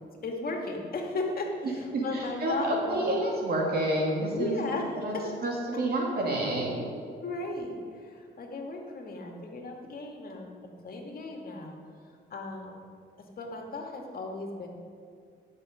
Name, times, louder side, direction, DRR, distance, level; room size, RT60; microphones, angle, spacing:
voice 1, 0.2-3.1 4.3-5.5 7.2-12.8 13.2-14.7, left 2 dB, 50° left, 1 dB, 2.2 m, -36 dB
voice 2, 1.9-4.6 5.0-5.1 5.4-6.9, right 1 dB, 50° right, -2 dB, 2.5 m, -29 dB
16.5 x 7.0 x 5.1 m, 2.3 s
cardioid pair, 90°, 20 cm